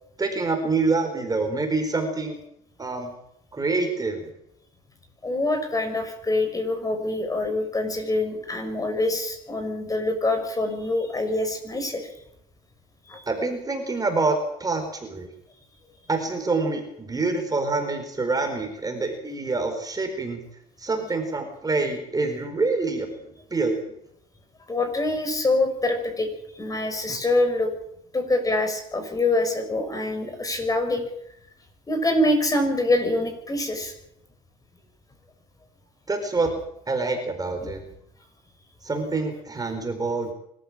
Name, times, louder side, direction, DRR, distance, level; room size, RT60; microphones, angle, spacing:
voice 1, 0.2-2.4 2.8-3.1 3.5-4.3 13.3-15.3 16.1-20.4 20.8-23.2 23.5-23.9 36.1-36.5 36.9-37.8 38.8-40.3, right 3 dB, 20° right, 5 dB, 4.5 m, -26 dB
voice 2, 5.2-12.1 13.1-13.2 24.7-26.3 26.6-27.7 28.1-31.0 31.9-33.9 37.6-37.7, left 2 dB, 20° left, 6 dB, 6.3 m, -25 dB
25.0 x 14.0 x 7.5 m, 0.76 s
cardioid pair, 110°, 17 cm